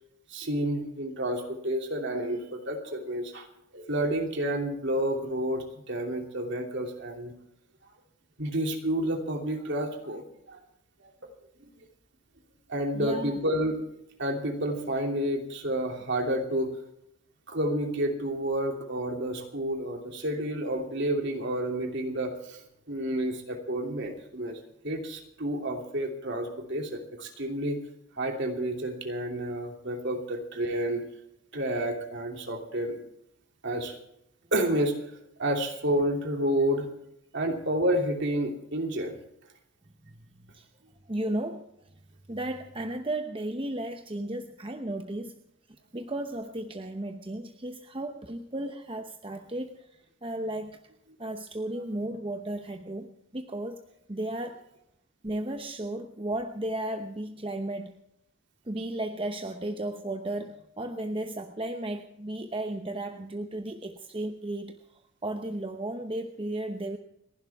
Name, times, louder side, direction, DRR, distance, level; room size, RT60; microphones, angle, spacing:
voice 1, 0.3-3.5 3.7-7.3 8.4-10.6 11.2-11.3 11.6-11.8 12.7-13.8 14.2-16.7 17.5-22.6 22.9-24.6 24.8-27.8 28.2-31.0 31.5-33.0 33.6-33.9 34.5-35.0 35.4-36.9 37.3-39.2, right 1 dB, 55° right, 2 dB, 2.8 m, -30 dB
voice 2, 12.9-13.4 40.0-40.7 41.1-41.7 42.3-45.4 45.9-50.8 51.2-53.8 54.1-54.6 55.2-57.9 58.7-67.0, right 1 dB, 25° right, 5 dB, 0.8 m, -34 dB
29.5 x 11.5 x 3.5 m, 0.78 s
head